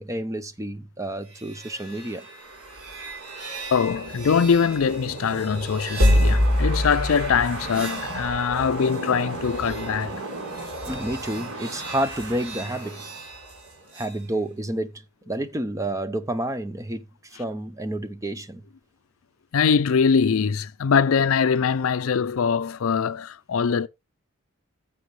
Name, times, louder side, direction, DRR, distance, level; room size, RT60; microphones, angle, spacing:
voice 1, 0.0-2.2 10.8-13.0 13.9-17.0 17.4-18.6, right 1 dB, 15° right, 0.7 m, -30 dB
sound 1, 1.3-14.2, equal, 85° right, 3.8 m, -28 dB
voice 2, 3.7-10.1 19.5-23.9, left 6 dB, 65° left, 0.4 m, -22 dB
14.5 x 7.0 x 3.2 m
head